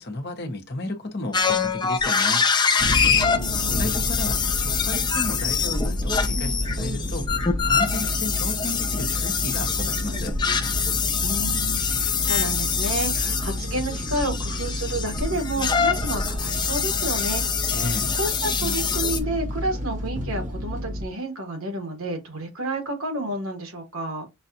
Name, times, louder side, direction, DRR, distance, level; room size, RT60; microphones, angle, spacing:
voice 1, 0.0-2.4 3.8-7.3 7.6-10.3 17.7-18.0, left 2 dB, 50° left, 1.1 m, -33 dB
sound 1, 1.3-19.2, left 6 dB, 20° left, 0.5 m, -25 dB
sound 2, 2.8-21.1, left 1 dB, 35° right, 1.1 m, -30 dB
voice 2, 3.1-4.1 11.2-17.4 17.7-17.9 18.1-24.3, right 1 dB, 80° right, 1.6 m, -30 dB
6.0 x 2.4 x 2.7 m
head